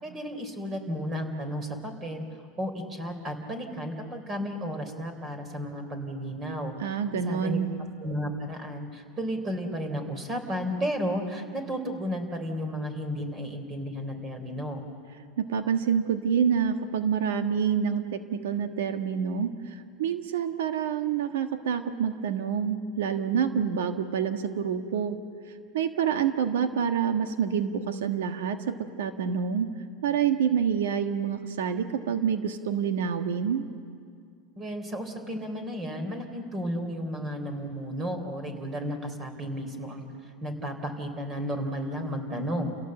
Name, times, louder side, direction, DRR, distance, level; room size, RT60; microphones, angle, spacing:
voice 1, 0.0-2.3 2.6-7.0 7.3-7.6 8.0-14.8 34.6-40.1 40.4-42.8, equal, 25° right, 7 dB, 3.7 m, -33 dB
voice 2, 6.8-7.7 15.4-25.2 25.7-29.7 30.0-33.7, right 7 dB, 90° right, 7 dB, 1.5 m, -27 dB
29.5 x 17.0 x 7.8 m, 2.3 s
supercardioid pair, 135°, 0 cm